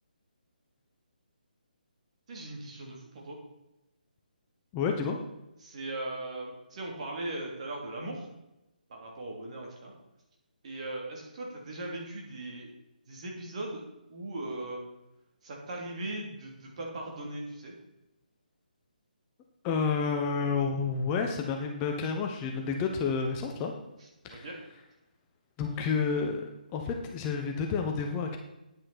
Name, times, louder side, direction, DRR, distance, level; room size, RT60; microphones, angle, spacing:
voice 1, 2.3-3.4 5.6-8.3 8.9-9.9 10.6-12.7 13.1-13.8 14.1-14.8 15.4-17.7 24.0-24.6, right 2 dB, 45° right, -1 dB, 3.3 m, -39 dB
voice 2, 4.7-5.2 19.6-23.7 24.2-24.5 25.6-28.4, left 5 dB, 20° left, 2 dB, 1.0 m, -30 dB
10.0 x 8.8 x 4.4 m, 0.94 s
figure-of-eight pair, 145°, 5 cm